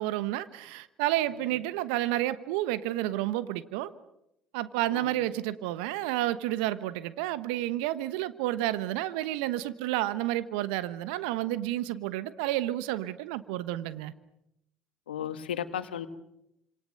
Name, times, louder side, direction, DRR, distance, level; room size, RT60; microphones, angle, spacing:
voice 1, 0.0-3.9 4.5-14.1, right 15 dB, 70° right, 14 dB, 1.2 m, -30 dB
voice 2, 15.1-16.1, left 9 dB, 85° left, 10 dB, 1.6 m, -34 dB
28.0 x 26.5 x 6.7 m, 0.83 s
hypercardioid pair, 60°, 5 cm